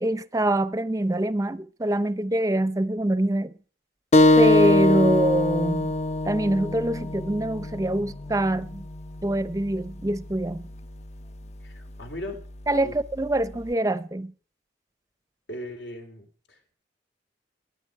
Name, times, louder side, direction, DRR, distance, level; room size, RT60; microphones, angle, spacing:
voice 1, 0.0-3.5 4.4-5.9 6.3-8.9 9.2-10.7 12.7-14.3, right 1 dB, 20° right, 0.6 m, -25 dB
sound 1, 4.1-9.3, left 2 dB, 40° left, 0.6 m, -22 dB
voice 2, 11.6-12.4 12.8-13.0 15.5-16.7, left 1 dB, 80° left, 3.5 m, -38 dB
22.0 x 8.9 x 4.8 m
head